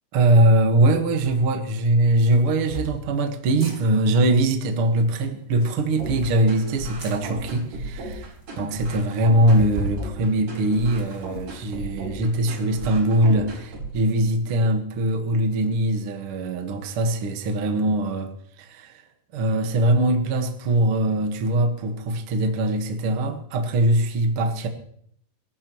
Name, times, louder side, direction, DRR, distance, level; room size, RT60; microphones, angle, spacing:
voice 1, 0.1-19.0 19.3-24.7, right 1 dB, 85° right, 1.2 m, -22 dB
sound 1, 1.2-1.4 2.2-3.0 3.5-3.8 5.4-6.3 7.0-7.2 7.8-7.9 8.1-8.2 8.5-8.6 9.5-10.0 10.5-11.4, right 1 dB, 30° right, 1.4 m, -35 dB
sound 2, 6.0-14.0, right 2 dB, 50° right, 6.6 m, -35 dB
23.5 x 14.5 x 3.1 m
omnidirectional pair, 5.1 m